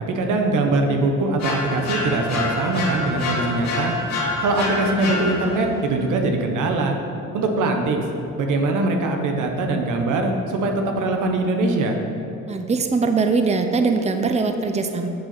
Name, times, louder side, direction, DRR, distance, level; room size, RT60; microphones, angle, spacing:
voice 1, 0.1-3.9 4.4-6.9 7.3-8.0 8.4-12.0, right 2 dB, 80° right, 3 dB, 1.3 m, -22 dB
sound 1, 1.4-5.7, left 3 dB, 60° left, 2.4 m, -27 dB
voice 2, 12.5-15.1, right 4 dB, 20° right, 6 dB, 0.8 m, -21 dB
9.6 x 6.7 x 6.8 m, 2.9 s
cardioid pair, 90°, 30 cm